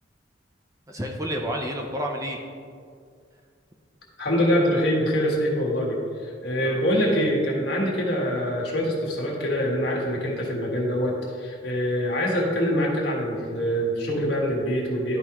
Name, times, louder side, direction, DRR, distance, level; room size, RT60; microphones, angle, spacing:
voice 1, 0.9-2.4 6.6-7.1, equal, 15° right, 1 dB, 0.5 m, -31 dB
voice 2, 4.2-15.2, equal, 60° left, -3 dB, 1.6 m, -24 dB
12.0 x 4.8 x 3.0 m, 2.2 s
head